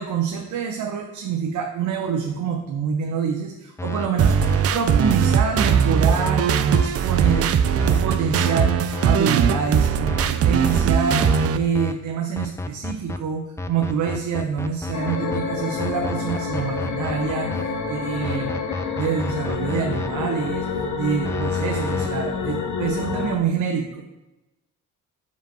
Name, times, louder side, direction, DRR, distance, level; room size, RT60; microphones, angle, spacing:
voice 1, 0.0-3.5 3.8-4.3 4.7-7.6 7.8-11.2 11.5-18.5 18.9-20.7 21.0-24.0, right 6 dB, 75° right, 2 dB, 0.9 m, -26 dB
sound 1, 3.8-4.1 4.4-4.6 5.0-5.2 5.6-5.7 6.1-6.3 6.7-6.9 7.2-7.4 7.8-8.0 8.4-8.6 8.9-9.1 9.5-9.7 10.1-10.3 10.6-10.8 11.2-11.5 11.7-11.9 12.4-13.2 13.6-15.4 15.8-17.6 18.2-20.1 21.2-22.1, left 2 dB, 10° left, 0.5 m, -30 dB
sound 2, 4.2-11.6, right 7 dB, 50° right, 0.5 m, -20 dB
sound 3, 14.9-23.4, left 5 dB, 75° left, 1.1 m, -28 dB
5.2 x 5.0 x 6.4 m, 1.0 s
cardioid pair, 90°, 30 cm